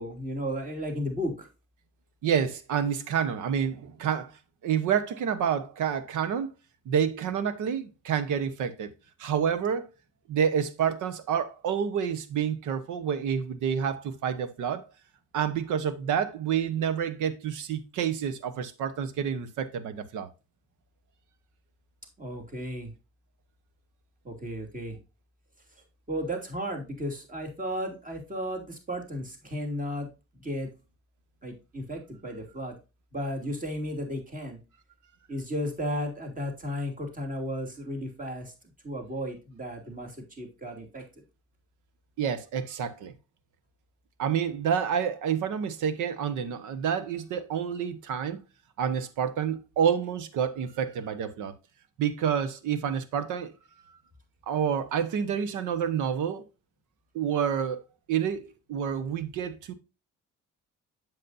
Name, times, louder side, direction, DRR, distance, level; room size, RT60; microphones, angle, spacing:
voice 1, 0.0-1.5 22.2-22.9 24.2-25.0 26.1-30.1 30.4-30.7 31.4-32.8 33.1-34.6 35.3-38.5 38.8-41.0, equal, 25° right, 2.7 m, -34 dB
voice 2, 2.2-4.3 4.6-6.5 6.9-8.9 9.2-9.9 10.3-14.9 15.3-20.3 42.2-43.1 44.2-48.4 48.8-51.5 52.0-53.5 54.5-56.4 57.1-57.8 58.1-59.7, right 8 dB, 85° right, 1.0 m, -28 dB
7.9 x 7.3 x 2.6 m
cardioid pair, 90°, 30 cm